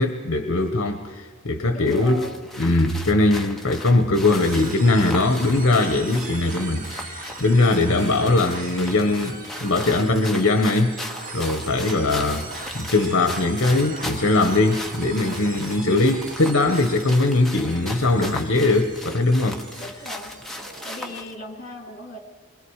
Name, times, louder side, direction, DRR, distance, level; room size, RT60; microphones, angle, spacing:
voice 1, 0.0-2.3 2.6-10.9 11.3-12.5 12.7-19.6, left 2 dB, 60° left, 6 dB, 1.1 m, -20 dB
voice 2, 1.7-2.4 19.8-20.4 20.8-22.2, left 1 dB, 40° left, 3 dB, 2.8 m, -38 dB
sound 1, 1.9-21.3, left 1 dB, ahead, 1.1 m, -38 dB
sound 2, 4.2-21.2, right 4 dB, 35° right, 1.4 m, -39 dB
27.5 x 23.5 x 4.9 m, 1.5 s
head